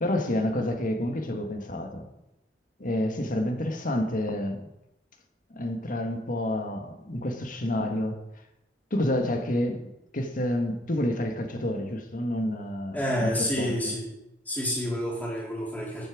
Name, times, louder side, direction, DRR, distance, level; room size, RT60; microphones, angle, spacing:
voice 1, 0.0-2.1 2.8-4.7 5.5-8.2 8.9-9.9 10.1-13.7, left 1 dB, 50° left, 1.6 m, -29 dB
voice 2, 12.9-14.1 14.5-16.1, equal, 10° left, 4.0 m, -29 dB
13.0 x 9.6 x 5.0 m
head